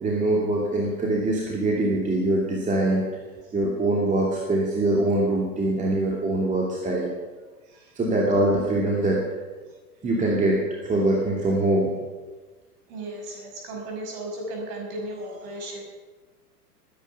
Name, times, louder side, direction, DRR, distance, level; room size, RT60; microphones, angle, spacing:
voice 1, 0.0-3.0 3.5-7.1 8.0-9.2 10.0-11.9, right 2 dB, 15° right, -3 dB, 2.7 m, -23 dB
voice 2, 7.6-8.0 9.7-9.8 12.9-15.8, right 1 dB, 45° right, 1 dB, 5.9 m, -35 dB
21.5 x 10.0 x 5.6 m, 1.3 s
figure-of-eight pair, 100°, 47 cm